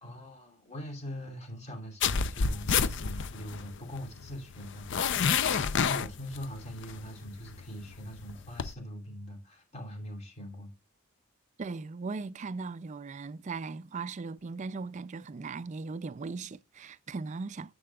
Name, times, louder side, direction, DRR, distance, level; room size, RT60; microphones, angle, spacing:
voice 1, 0.0-10.7, equal, 30° left, 2.9 m, -42 dB
sound 1, 2.0-8.7, left 6 dB, 55° left, 0.5 m, -30 dB
voice 2, 11.6-17.7, right 4 dB, 35° right, 0.4 m, -38 dB
10.0 x 7.6 x 2.3 m
head